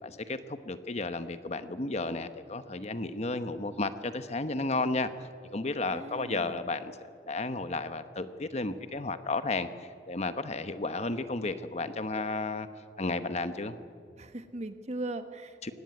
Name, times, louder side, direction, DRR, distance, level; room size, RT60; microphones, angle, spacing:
voice 1, 0.0-5.1 5.5-6.9 7.3-9.7 10.1-12.7 13.0-13.8 15.6-15.7, left 3 dB, 40° left, 11 dB, 1.0 m, -33 dB
voice 2, 5.8-6.6 14.2-15.6, right 2 dB, 40° right, 9 dB, 1.4 m, -39 dB
23.0 x 18.0 x 9.6 m, 2.2 s
head